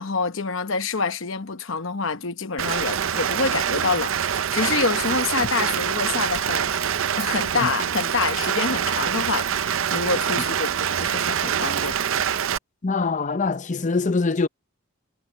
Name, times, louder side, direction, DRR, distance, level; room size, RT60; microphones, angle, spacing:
voice 1, 0.0-6.7 7.2-12.0, left 4 dB, 65° left, 1.0 m, -27 dB
Rain, 2.6-12.6, right 8 dB, 65° right, 0.6 m, -25 dB
voice 2, 12.8-14.5, left 4 dB, 35° left, 0.6 m, -23 dB
head